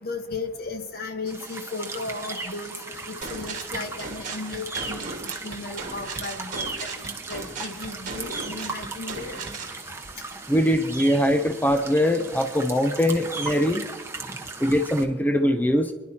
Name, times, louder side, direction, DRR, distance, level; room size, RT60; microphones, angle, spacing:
voice 1, 0.0-6.7 7.0-9.4, left 3 dB, 55° left, 7 dB, 1.1 m, -35 dB
sound 1, 1.3-15.0, right 3 dB, 15° right, 1.1 m, -37 dB
sound 2, 3.2-9.8, right 4 dB, 45° right, 1.6 m, -37 dB
voice 2, 10.5-13.8 14.6-15.9, equal, 10° left, 7 dB, 0.5 m, -22 dB
28.5 x 11.0 x 2.8 m, 1.3 s
head